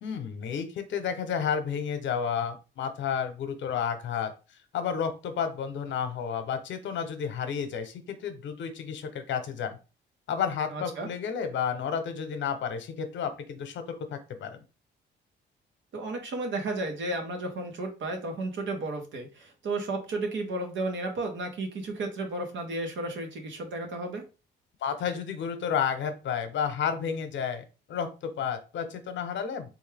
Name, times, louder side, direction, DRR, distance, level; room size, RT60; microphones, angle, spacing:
voice 1, 0.0-4.3 4.7-9.8 10.3-14.6 24.8-29.7, left 7 dB, 70° left, 8 dB, 0.8 m, -31 dB
voice 2, 10.7-11.1 15.9-24.3, right 2 dB, 70° right, 4 dB, 1.1 m, -33 dB
3.5 x 2.5 x 3.4 m, 0.32 s
cardioid pair, 90°, 20 cm